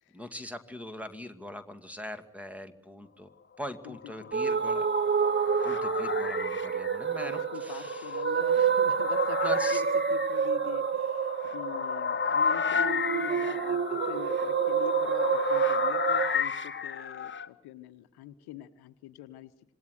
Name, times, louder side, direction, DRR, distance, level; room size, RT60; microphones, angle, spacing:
voice 1, 0.1-3.3 3.6-4.9 5.6-8.2 9.4-9.8, left 1 dB, 5° right, 10 dB, 2.3 m, -41 dB
voice 2, 3.8-4.5 7.2-19.7, left 13 dB, 60° left, 12 dB, 1.1 m, -44 dB
sound 1, 4.0-17.5, left 6 dB, 25° left, 1.4 m, -33 dB
sound 2, 4.3-16.4, right 7 dB, 25° right, 0.9 m, -28 dB
26.5 x 21.0 x 6.5 m, 0.76 s
figure-of-eight pair, 40°, 43 cm